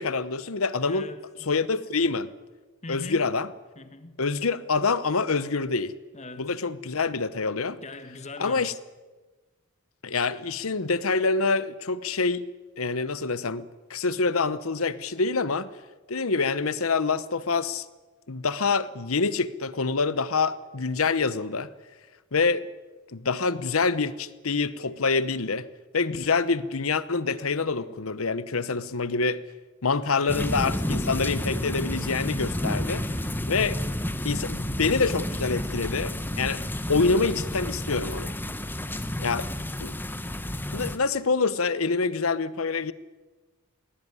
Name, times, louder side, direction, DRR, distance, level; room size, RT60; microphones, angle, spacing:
voice 1, 0.0-1.1 1.5-2.3 2.9-3.5 4.2-5.9 6.4-7.8 8.4-8.7 10.0-12.4 12.8-13.6 13.9-15.7 16.1-17.8 18.3-21.7 22.3-22.6 23.1-25.7 25.9-29.4 29.8-33.0 33.5-33.8 34.2-36.6 36.9-38.3 39.2-39.5 39.8-40.0 40.7-42.9, left 4 dB, 75° left, 1.0 m, -26 dB
voice 2, 0.8-1.5 2.8-3.3 3.7-4.2 6.1-6.6 7.8-8.8 30.1-30.5 32.8-33.3, left 3 dB, 30° left, 1.7 m, -41 dB
sound 1, 30.3-41.0, left 1 dB, 10° left, 1.0 m, -30 dB
20.0 x 18.5 x 9.7 m
head